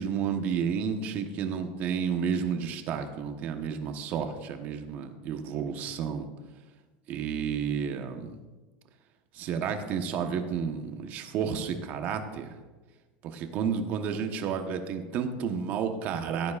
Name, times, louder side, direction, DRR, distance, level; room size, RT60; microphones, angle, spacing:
voice 1, 0.0-6.3 7.1-8.4 9.3-12.5 13.2-16.6, right 7 dB, 40° right, 6 dB, 1.1 m, -31 dB
17.0 x 9.3 x 2.5 m, 1.3 s
supercardioid pair, 145°, 4 cm